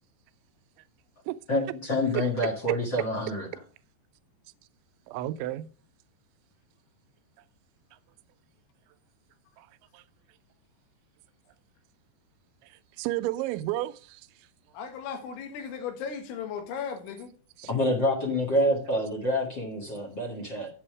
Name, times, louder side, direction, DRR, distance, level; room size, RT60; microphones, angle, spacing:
voice 1, 1.5-3.5 17.7-20.7, left 1 dB, 55° left, 1.2 m, -27 dB
voice 2, 5.1-5.7 9.6-9.7 9.9-10.0 13.0-14.2 17.6-17.7, right 16 dB, 85° right, 2.9 m, -31 dB
voice 3, 14.7-17.3, left 7 dB, 90° left, 4.0 m, -36 dB
8.5 x 7.7 x 4.7 m
omnidirectional pair, 5.3 m